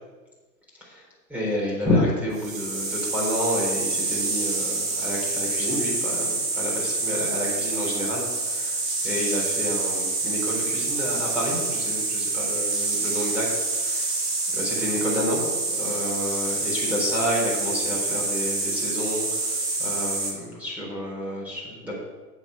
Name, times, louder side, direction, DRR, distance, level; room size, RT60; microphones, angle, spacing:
voice 1, 1.3-14.1 14.5-19.5 19.8-21.9, left 1 dB, 5° right, -5 dB, 4.1 m, -29 dB
sound 1, 2.3-20.3, right 3 dB, 55° right, 4.1 m, -27 dB
8.0 x 7.8 x 6.9 m, 1.2 s
hypercardioid pair, 120°, 49 cm